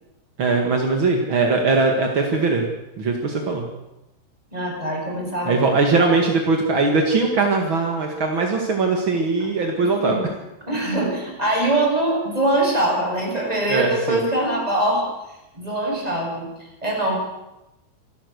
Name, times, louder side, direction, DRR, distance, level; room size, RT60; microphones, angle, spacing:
voice 1, 0.4-2.7 3.0-3.6 5.4-10.1 13.7-14.2, right 3 dB, 50° right, 2 dB, 1.5 m, -20 dB
voice 2, 4.5-5.6 9.8-10.3 10.7-15.0 15.5-16.5 16.8-17.2, right 1 dB, 10° right, -2 dB, 7.0 m, -23 dB
27.0 x 12.5 x 8.1 m, 0.94 s
omnidirectional pair, 5.4 m